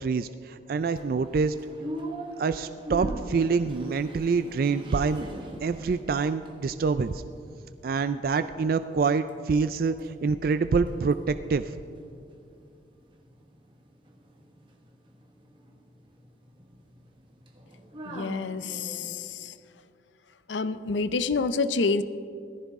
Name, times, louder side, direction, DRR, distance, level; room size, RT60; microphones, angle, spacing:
voice 1, 0.0-1.5 2.4-7.2 7.8-11.7, right 4 dB, 55° right, 11 dB, 0.3 m, -26 dB
sound 1, 0.8-8.0 8.4-9.4 9.6-19.2, right 1 dB, 30° right, 1.3 m, -43 dB
voice 2, 18.1-19.5 20.5-22.0, left 4 dB, 90° left, 13 dB, 0.6 m, -28 dB
17.5 x 14.5 x 3.6 m, 2.4 s
head